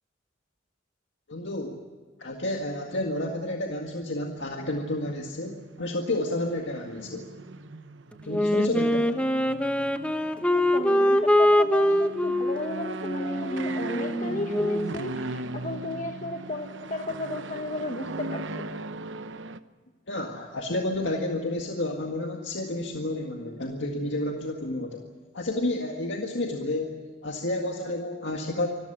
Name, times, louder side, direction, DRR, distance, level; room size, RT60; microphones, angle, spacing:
voice 1, 1.3-1.8 2.2-7.3 8.2-9.1 20.1-25.0 25.3-28.7, left 1 dB, 80° left, 2 dB, 1.9 m, -30 dB
sound 1, 4.4-5.2 5.6-19.6, right 2 dB, 80° right, 0.9 m, -39 dB
Wind instrument woodwind instrument, 8.3-15.0, left 1 dB, 5° left, 0.9 m, -24 dB
voice 2, 10.5-18.8, left 2 dB, 40° left, 3 dB, 1.5 m, -34 dB
25.5 x 14.5 x 10.0 m, 1.5 s
head